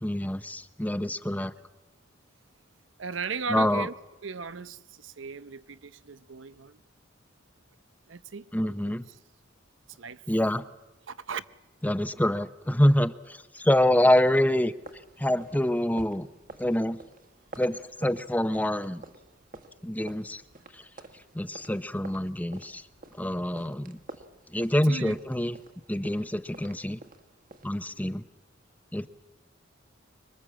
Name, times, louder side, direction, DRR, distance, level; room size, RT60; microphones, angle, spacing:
voice 1, 0.0-1.5 3.5-3.9 8.5-9.0 10.3-10.6 11.8-14.7 15.2-16.3 16.6-17.0 17.6-19.0 19.8-20.4 21.3-22.8 23.2-24.0 24.5-25.6 25.9-27.0 27.6-28.2 28.9-29.1, left 1 dB, 10° left, 0.7 m, -26 dB
voice 2, 3.0-3.9 4.2-6.8 8.1-9.0 10.0-10.2 11.1-11.4 24.8-25.1 27.9-28.1 29.0-29.1, right 5 dB, 85° right, 0.8 m, -37 dB
sound 1, 14.7-27.7, right 2 dB, 45° right, 1.8 m, -50 dB
25.5 x 22.5 x 7.5 m
head